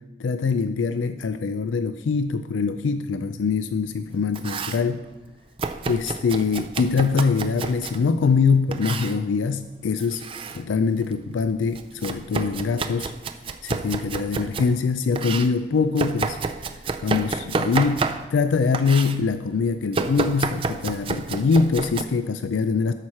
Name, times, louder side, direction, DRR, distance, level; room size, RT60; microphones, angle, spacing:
voice 1, 0.2-5.0 5.9-10.3 10.5-13.1 13.6-16.4 17.0-18.0 18.3-22.9, left 5 dB, 90° left, 10 dB, 0.4 m, -23 dB
Domestic sounds home sounds, 4.1-4.9 5.6-8.0 8.7-9.2 10.0-10.6 11.0-14.7 15.1-18.5 18.7-19.2 19.9-22.0, right 4 dB, 30° right, 0.4 m, -30 dB
13.0 x 6.4 x 4.3 m, 1.1 s
head